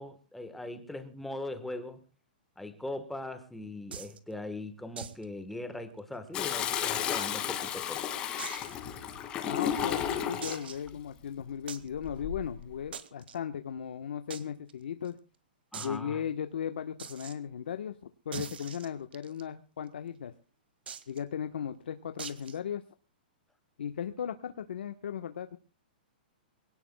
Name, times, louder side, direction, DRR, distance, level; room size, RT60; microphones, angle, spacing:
voice 1, 0.0-2.0 2.6-8.2 15.7-16.2, left 2 dB, ahead, 1.3 m, -40 dB
sound 1, 3.9-4.2 5.0-5.2 5.5-5.6 6.0-6.1 6.7-7.5 8.4-8.7 9.3-9.4 10.4-10.9 11.7-11.9 12.9-13.4 14.3-14.4 14.7-14.8 15.0-15.1 15.7-16.0 17.0-17.3 18.3-19.4 20.9-21.2 22.2-22.6, right 7 dB, 90° right, 2.0 m, -42 dB
Toilet flush, 6.3-10.7 12.0-12.5, left 9 dB, 20° left, 2.1 m, -33 dB
voice 2, 9.4-15.2 15.8-18.0 18.2-20.3 21.1-22.8 23.8-25.6, left 8 dB, 80° left, 1.2 m, -37 dB
24.0 x 18.0 x 2.3 m
hypercardioid pair, 175°, 5 cm